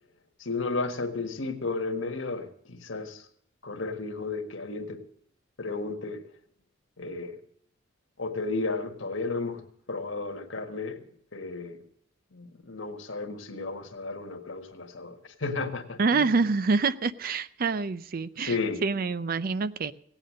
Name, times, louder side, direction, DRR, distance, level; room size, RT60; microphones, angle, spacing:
voice 1, 0.4-3.2 3.6-5.0 5.6-6.2 7.0-7.4 8.2-9.6 9.9-11.0 11.3-11.8 12.3-16.3 18.4-18.8, left 3 dB, 75° left, 6 dB, 1.7 m, -33 dB
voice 2, 16.0-18.6 18.8-19.9, right 4 dB, 45° right, 16 dB, 0.5 m, -26 dB
17.5 x 9.0 x 6.3 m, 0.63 s
head